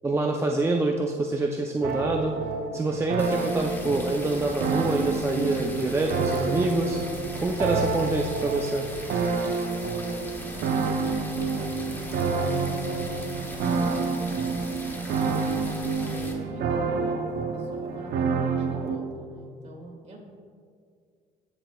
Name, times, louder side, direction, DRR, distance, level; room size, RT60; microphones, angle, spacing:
voice 1, 0.0-2.3 2.7-7.0 7.4-8.9, right 2 dB, 15° right, 1 dB, 0.5 m, -26 dB
sound 1, 1.8-19.0, right 4 dB, 65° right, 0.8 m, -28 dB
sound 2, 3.2-16.3, left 1 dB, 10° left, 1.2 m, -41 dB
voice 2, 9.9-15.6 16.1-20.2, right 1 dB, 40° right, -1 dB, 2.2 m, -44 dB
15.0 x 6.3 x 2.3 m, 2.1 s
cardioid pair, 110°, 17 cm